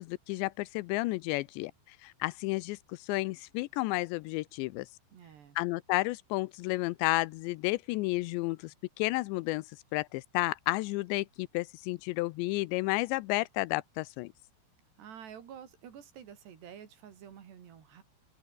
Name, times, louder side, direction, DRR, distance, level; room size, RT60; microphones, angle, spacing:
voice 1, 0.0-4.9 5.6-9.6 9.9-14.3, left 21 dB, 85° left, 2.8 m, -32 dB
voice 2, 5.1-5.6 15.0-18.0, right 8 dB, 70° right, 5.0 m, -49 dB
open air
omnidirectional pair, 5.1 m